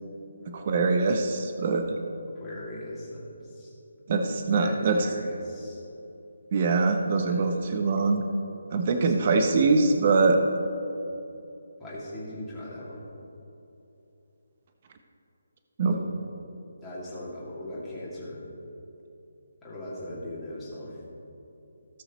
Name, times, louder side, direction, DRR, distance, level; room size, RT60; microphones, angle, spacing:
voice 1, 0.5-1.8 4.1-5.0 6.5-8.2 8.7-10.4 15.8-16.0, right 4 dB, 30° right, 5 dB, 0.7 m, -23 dB
voice 2, 2.4-3.7 4.6-5.8 7.2-7.5 8.9-9.6 11.8-13.0 15.9-16.1 16.8-18.4 19.6-21.0, left 1 dB, 5° left, -10 dB, 2.2 m, -39 dB
17.5 x 6.5 x 3.0 m, 2.8 s
hypercardioid pair, 170°, 0 cm